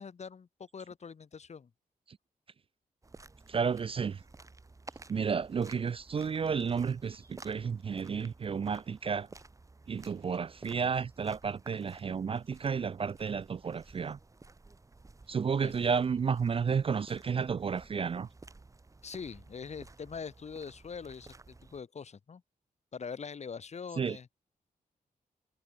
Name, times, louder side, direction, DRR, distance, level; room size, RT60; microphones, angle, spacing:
voice 1, 0.0-1.7 15.6-15.7 19.0-22.4 22.9-24.3, left 6 dB, 50° left, 2.4 m, -43 dB
sound 1, 3.0-21.8, right 3 dB, 20° right, 1.2 m, -54 dB
voice 2, 3.5-4.2 5.1-9.3 9.9-14.2 15.3-18.3 24.0-24.2, right 6 dB, 35° right, 0.4 m, -32 dB
wide cardioid pair, 115°, 15 cm